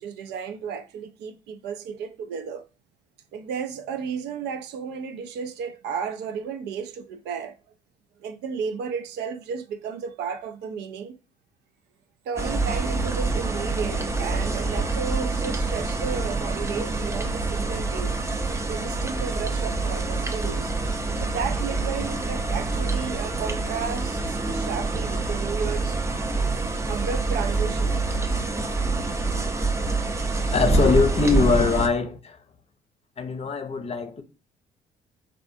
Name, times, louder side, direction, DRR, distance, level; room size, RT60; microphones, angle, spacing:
voice 1, 0.0-2.6 3.3-7.6 8.2-11.2 12.3-18.1 18.7-20.7 21.2-26.0 26.9-28.0, right 6 dB, 70° right, 0.4 m, -33 dB
sound 1, 12.4-31.9, right 3 dB, 15° right, 0.5 m, -26 dB
voice 2, 30.5-32.4 33.2-34.2, left 5 dB, 35° left, 0.6 m, -22 dB
3.4 x 2.4 x 2.5 m
hypercardioid pair, 60°, 18 cm